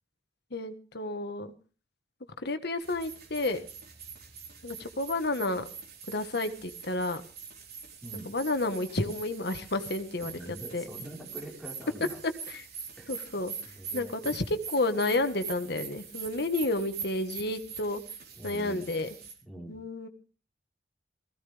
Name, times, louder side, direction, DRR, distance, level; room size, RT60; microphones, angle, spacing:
voice 1, 0.5-1.5 2.4-3.6 4.6-5.7 6.1-7.2 8.2-10.4 10.7-10.8 12.5-12.6 13.1-13.5 13.9-18.0 18.4-19.1 19.7-20.1, left 2 dB, 60° left, 8 dB, 1.5 m, -31 dB
sound 1, 2.8-19.3, right 6 dB, 55° right, 4.5 m, -44 dB
voice 2, 10.2-12.2 13.0-13.1 13.7-14.5 18.4-18.9 19.4-19.8, right 1 dB, ahead, -2 dB, 4.7 m, -44 dB
19.5 x 15.5 x 3.5 m, 0.37 s
head